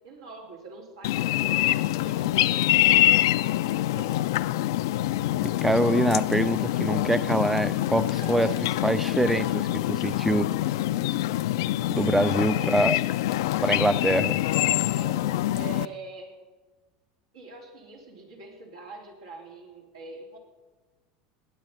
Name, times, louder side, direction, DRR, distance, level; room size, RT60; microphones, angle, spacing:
voice 1, 0.0-1.7 2.0-4.8 8.2-8.6 12.1-12.8 15.0-16.4 17.3-20.4, right 3 dB, 90° right, 3.6 m, -44 dB
sound 1, 1.0-15.9, left 15 dB, 75° left, 0.4 m, -25 dB
voice 2, 5.6-8.5 8.8-10.5 11.9-13.0 13.6-14.4, right 1 dB, 5° right, 0.4 m, -24 dB
20.0 x 8.8 x 5.6 m
hypercardioid pair, 90°, 2 cm